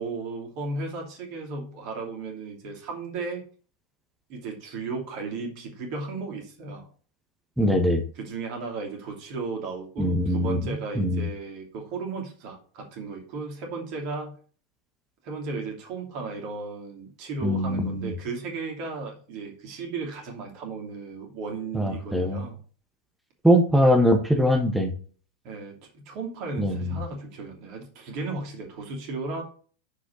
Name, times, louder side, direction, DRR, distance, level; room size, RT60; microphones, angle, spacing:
voice 1, 0.0-3.4 4.3-6.9 8.2-14.3 15.2-22.6 25.4-29.4, right 4 dB, 40° right, 2 dB, 2.7 m, -35 dB
voice 2, 7.6-8.0 10.0-10.7 11.0-11.3 17.4-18.1 21.7-22.5 23.4-24.9 26.6-27.0, equal, 5° right, 4 dB, 1.3 m, -22 dB
6.6 x 5.0 x 6.3 m, 0.41 s
figure-of-eight pair, 90°, 0 cm